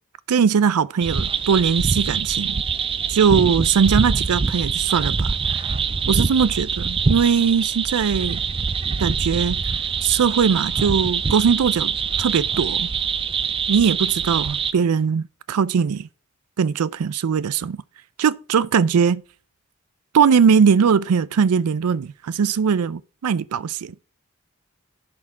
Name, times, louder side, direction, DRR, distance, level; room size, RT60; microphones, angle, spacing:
voice 1, 0.3-2.6 3.1-5.7 6.1-8.4 9.0-9.6 10.0-12.9 13.7-16.1 16.6-17.8 18.2-19.2 20.1-23.9, right 6 dB, 90° right, 0.4 m, -20 dB
sound 1, 1.0-14.7, right 5 dB, 25° right, 0.3 m, -24 dB
10.5 x 5.9 x 3.6 m
head